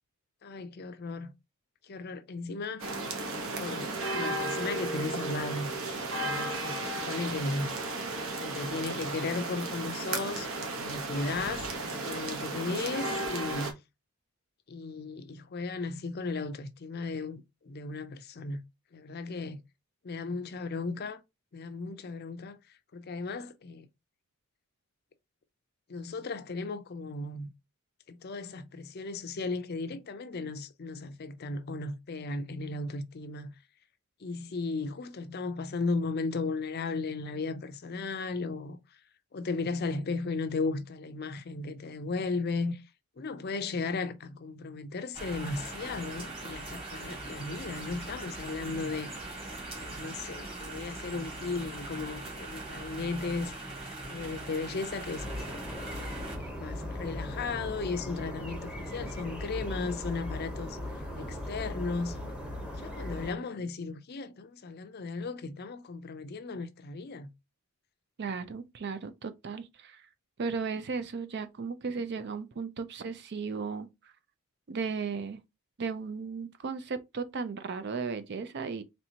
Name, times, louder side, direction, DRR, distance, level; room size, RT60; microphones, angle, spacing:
voice 1, 0.4-1.3 1.8-2.8 3.6-5.7 6.1-7.7 8.4-13.8 14.7-18.6 18.9-19.6 20.0-21.2 21.5-22.6 22.9-23.9 25.9-27.5 28.1-33.5 34.2-38.8 39.3-42.8 43.2-49.1 49.7-53.7 54.0-55.6 56.4-60.8 61.2-62.2 62.8-67.3, left 3 dB, 45° left, 0.5 m, -36 dB
sound 1, 2.8-13.7, right 2 dB, 65° right, 1.0 m, -34 dB
sound 2, 45.1-56.4, right 2 dB, 25° right, 1.7 m, -41 dB
sound 3, 55.2-63.3, left 1 dB, 5° right, 0.8 m, -38 dB
voice 2, 68.2-70.0 70.4-73.9 74.7-75.4 75.8-78.8, right 5 dB, 50° right, 0.4 m, -35 dB
4.3 x 3.3 x 2.8 m
head